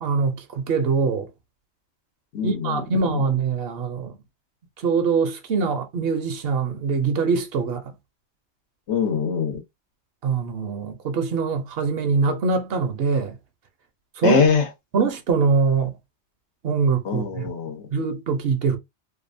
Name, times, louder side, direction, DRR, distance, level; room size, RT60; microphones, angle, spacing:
voice 1, 0.0-1.3 2.4-4.2 4.8-7.9 10.2-13.4 14.2-14.4 14.9-15.9 16.6-17.5 17.9-18.8, right 5 dB, 65° right, 0.8 m, -23 dB
voice 2, 2.3-2.8 3.1-3.2 8.9-9.6 14.2-14.7 17.0-17.9, left 6 dB, 80° left, 1.1 m, -23 dB
2.7 x 2.3 x 2.5 m
omnidirectional pair, 1.1 m